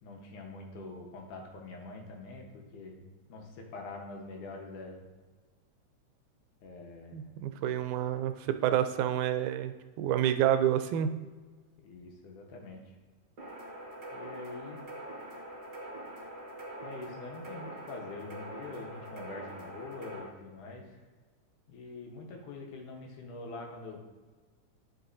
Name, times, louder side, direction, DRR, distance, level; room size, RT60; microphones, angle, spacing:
voice 1, 0.0-5.1 6.6-7.4 11.8-13.0 14.1-14.8 16.8-21.0 21.7-24.0, left 3 dB, 85° left, 1 dB, 2.6 m, -45 dB
voice 2, 7.1-11.1, right 10 dB, 85° right, 9 dB, 2.0 m, -29 dB
sound 1, 13.4-20.2, right 1 dB, 40° right, 1.5 m, -44 dB
11.5 x 5.3 x 2.7 m, 1.4 s
omnidirectional pair, 3.5 m